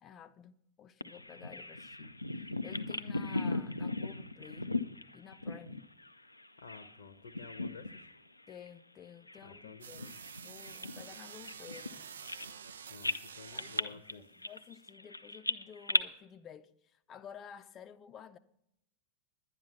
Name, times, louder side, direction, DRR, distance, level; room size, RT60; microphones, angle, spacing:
voice 1, 0.0-2.1 2.6-4.7 5.1-5.9 8.5-10.1 10.4-12.1 13.5-18.4, left 8 dB, 30° left, 0.5 m, -52 dB
Bird vocalization bird call bird song, 1.0-7.0 7.2-8.2 8.5-8.7 9.3-12.7 13.0-16.0, left 2 dB, 85° left, 0.5 m, -38 dB
voice 2, 6.6-7.9 9.4-10.1 12.9-14.2, left 5 dB, 65° left, 0.8 m, -51 dB
sound 1, 9.8-14.1, right 8 dB, 65° right, 0.4 m, -49 dB
11.0 x 9.3 x 5.9 m
figure-of-eight pair, 90°, 0 cm